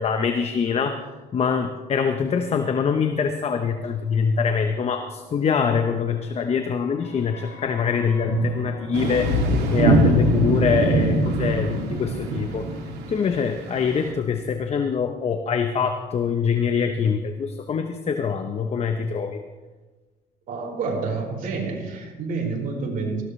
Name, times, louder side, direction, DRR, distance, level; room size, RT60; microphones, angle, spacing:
voice 1, 0.0-12.7 13.1-19.4, left 6 dB, 40° left, 7 dB, 0.9 m, -24 dB
sound 1, 6.5-14.7 14.9-15.0, left 3 dB, 85° left, 3.9 m, -30 dB
sound 2, 8.9-14.1, right 3 dB, 85° right, 2.4 m, -23 dB
voice 2, 20.5-23.2, right 4 dB, 60° right, -1 dB, 4.7 m, -28 dB
19.0 x 15.0 x 3.3 m, 1.3 s
cardioid pair, 105°, 17 cm